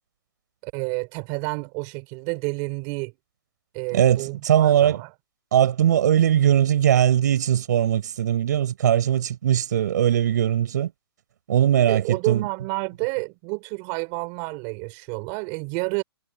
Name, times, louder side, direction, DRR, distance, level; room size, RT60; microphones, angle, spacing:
voice 1, 0.6-3.1 3.7-5.1 11.9-16.0, right 29 dB, 20° right, 4.3 m, -30 dB
voice 2, 3.9-5.0 5.5-10.9 11.5-12.4, right 10 dB, 45° right, 6.7 m, -20 dB
hypercardioid pair, 175°, 14 cm